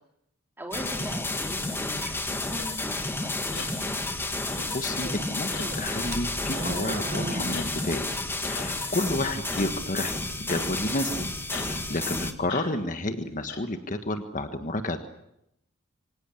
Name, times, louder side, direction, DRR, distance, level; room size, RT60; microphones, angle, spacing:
voice 1, 0.6-4.1 12.0-12.3, right 1 dB, 10° right, 2 dB, 4.1 m, -41 dB
sound 1, 0.7-12.3, left 2 dB, 10° left, 1.8 m, -31 dB
sound 2, 2.5-2.7 3.5-3.8 4.5-4.8 5.5-5.7 6.5-6.8 7.5-7.7 8.5-8.7 9.5-9.8 10.5-10.9 11.5-11.7 12.5-12.7 13.5-13.6, left 5 dB, 60° left, 4.7 m, -40 dB
voice 2, 4.4-8.1 8.4-10.1 10.4-11.3 11.6-15.0, left 1 dB, 40° left, 7 dB, 1.5 m, -31 dB
sound 3, 4.9-8.7 9.2-9.3 9.9-10.0, right 1 dB, 35° right, 1.3 m, -36 dB
25.5 x 18.0 x 9.9 m, 0.81 s
head